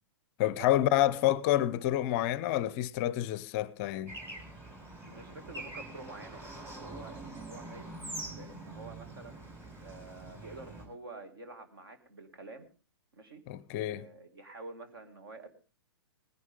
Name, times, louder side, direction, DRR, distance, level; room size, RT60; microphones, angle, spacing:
voice 1, 0.4-4.2 13.5-14.0, left 13 dB, 30° left, 0.5 m, -28 dB
Bird / Traffic noise roadway noise, 4.1-10.9, right 2 dB, 20° right, 3.8 m, -44 dB
voice 2, 5.0-7.9 8.3-9.4 9.8-12.7 13.1-13.4 13.8-15.5, right 3 dB, 60° right, 2.4 m, -48 dB
19.0 x 11.0 x 3.7 m
figure-of-eight pair, 110°, 13 cm